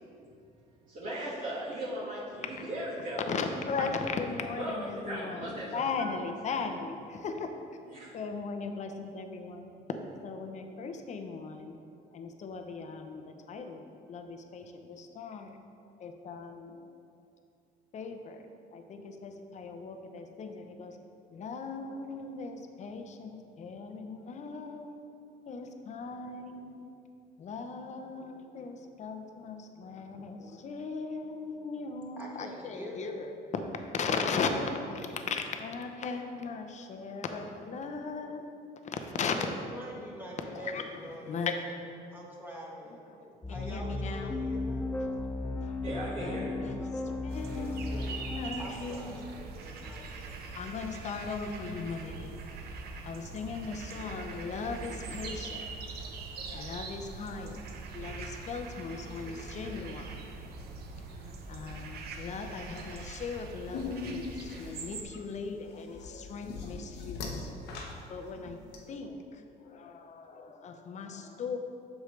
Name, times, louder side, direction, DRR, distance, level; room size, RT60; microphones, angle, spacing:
voice 1, 0.9-3.2 3.8-3.9 4.6-6.1 6.5-6.6 7.9-8.2 45.8-46.5, right 1 dB, 50° right, -9 dB, 1.7 m, -37 dB
voice 2, 3.2-7.6 8.1-9.7 10.2-11.8 12.1-15.6 16.0-16.8 17.9-18.4 18.7-21.0 21.3-25.0 25.5-26.9 27.4-33.6 33.9-38.5 38.8-39.4 40.5-41.5 43.2-44.3 45.0-45.3 45.6-45.8 46.2-49.2 50.5-52.4 53.0-57.6 57.9-60.2 60.9-67.5 68.1-68.6 68.8-71.6, left 4 dB, 45° left, 6 dB, 0.7 m, -38 dB
voice 3, 32.2-33.2 39.4-39.5 39.7-41.4 42.1-43.0 43.5-44.9 48.6-50.4, equal, 10° right, -4 dB, 1.6 m, -44 dB
sound 1, 43.4-48.5, left 2 dB, 10° left, 0.3 m, -35 dB
sound 2, 47.3-65.0, right 3 dB, 70° right, 0.8 m, -43 dB
sound 3, 63.7-68.8, left 4 dB, 80° left, 1.0 m, -40 dB
8.2 x 6.4 x 3.2 m, 2.6 s
cardioid pair, 110°, 17 cm